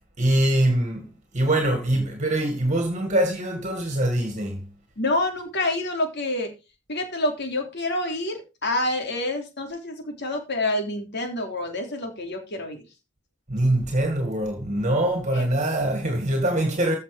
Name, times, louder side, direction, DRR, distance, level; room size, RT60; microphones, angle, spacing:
voice 1, 0.2-4.6 13.5-17.0, right 1 dB, 35° right, 2.0 m, -23 dB
voice 2, 5.0-6.5 6.9-12.8 15.3-15.5, left 1 dB, 60° left, 3.4 m, -27 dB
14.5 x 5.9 x 5.1 m
head